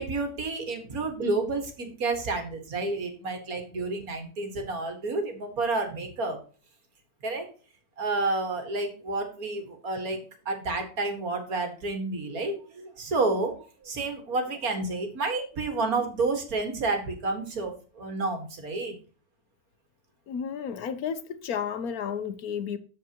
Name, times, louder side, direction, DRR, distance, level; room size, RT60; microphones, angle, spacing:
voice 1, 0.0-6.4 7.2-7.5 8.0-10.2 10.5-13.6 13.8-19.0, right 3 dB, 65° right, 2.2 m, -30 dB
voice 2, 20.3-22.8, left 7 dB, 70° left, 1.3 m, -32 dB
13.5 x 4.7 x 2.9 m
omnidirectional pair, 1.6 m